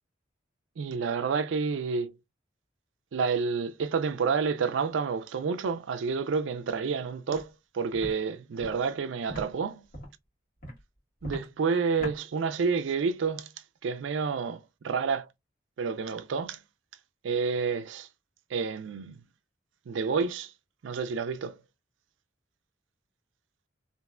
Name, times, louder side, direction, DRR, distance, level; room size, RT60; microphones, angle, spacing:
voice 1, 0.8-2.1 3.1-9.9 11.2-13.5 13.8-15.3 15.8-16.6 17.2-18.1 18.5-19.2 19.9-20.5 20.8-21.6, right 5 dB, 90° right, 0.4 m, -29 dB
Walk footsteps, 7.3-7.4 7.9-8.1 8.6-8.7 9.3-9.4 9.9-10.2 10.6-10.8 11.2-11.5 12.0-12.2, equal, 50° left, 1.7 m, -38 dB
3.2 x 2.5 x 2.4 m
head